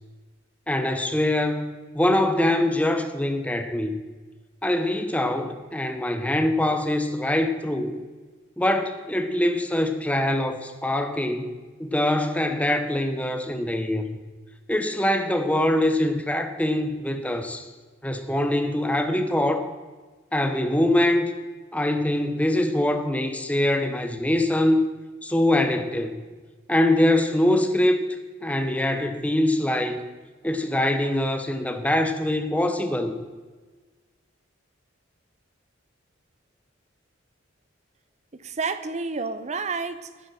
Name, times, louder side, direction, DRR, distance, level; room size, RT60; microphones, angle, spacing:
voice 1, 0.7-4.0 4.6-8.0 8.6-11.5 11.8-14.2 14.7-17.7 18.0-19.7 20.3-21.3 21.7-24.9 25.2-26.2 26.7-28.0 28.4-30.1 30.4-33.1, left 1 dB, 5° left, 7 dB, 0.8 m, -23 dB
voice 2, 38.3-40.3, right 4 dB, 35° right, 12 dB, 0.6 m, -30 dB
9.8 x 9.7 x 6.1 m, 1.4 s
head